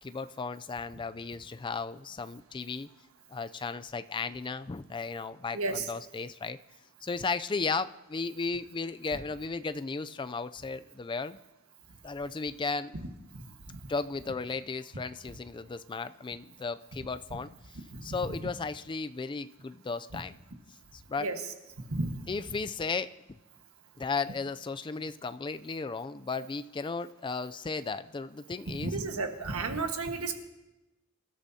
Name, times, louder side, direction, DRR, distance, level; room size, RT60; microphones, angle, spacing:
voice 1, 0.0-2.9 3.3-6.6 7.0-11.4 12.0-13.0 13.9-20.3 20.9-21.3 22.3-23.1 24.0-29.0, left 4 dB, 20° left, 12 dB, 0.4 m, -35 dB
voice 2, 5.5-5.9 13.7-13.8 17.9-18.1 21.2-21.3 21.9-22.2 28.8-30.4, right 3 dB, 75° right, 5 dB, 1.4 m, -32 dB
26.0 x 13.0 x 2.8 m, 1.0 s
head